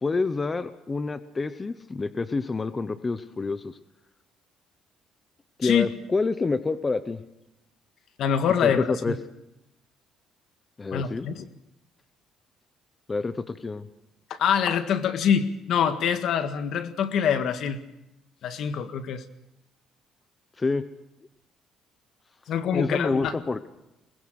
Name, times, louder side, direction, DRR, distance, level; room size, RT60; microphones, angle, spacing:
voice 1, 0.0-3.8 5.6-7.2 8.6-9.2 10.8-11.3 13.1-13.9 20.6-20.8 22.7-23.7, left 3 dB, 20° left, 12 dB, 0.9 m, -28 dB
voice 2, 8.2-8.9 10.9-11.4 14.3-17.8 18.4-19.2 22.5-23.3, left 8 dB, 65° left, 9 dB, 1.7 m, -25 dB
23.0 x 20.0 x 6.5 m, 0.90 s
cardioid pair, 120°, 0 cm